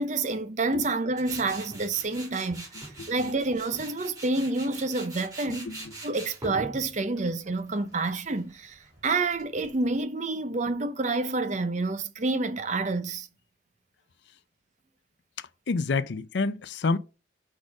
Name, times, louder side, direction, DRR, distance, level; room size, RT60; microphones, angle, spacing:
voice 1, 0.0-13.3, right 3 dB, 40° right, 0.7 m, -29 dB
Tools, 1.2-10.0, right 2 dB, 20° right, 2.7 m, -44 dB
voice 2, 5.5-5.8 15.7-17.0, left 4 dB, 70° left, 0.5 m, -28 dB
5.0 x 4.3 x 5.9 m
head